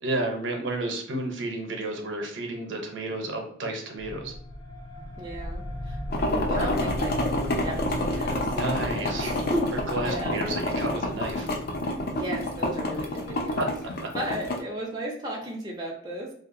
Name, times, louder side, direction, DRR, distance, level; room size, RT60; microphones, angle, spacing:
voice 1, 0.0-4.3 8.5-9.3 9.9-11.5 13.6-13.7, right 2 dB, 70° right, 2 dB, 0.6 m, -31 dB
sound 1, 4.0-14.2, left 1 dB, 85° left, 0.9 m, -37 dB
voice 2, 5.2-7.1 7.6-8.5 9.2-9.8 10.0-10.4 11.9-13.7 14.1-16.3, right 1 dB, 20° right, -2 dB, 0.4 m, -34 dB
sound 2, 6.1-14.6, left 1 dB, 50° left, 0.4 m, -28 dB
2.7 x 2.3 x 2.5 m, 0.63 s
head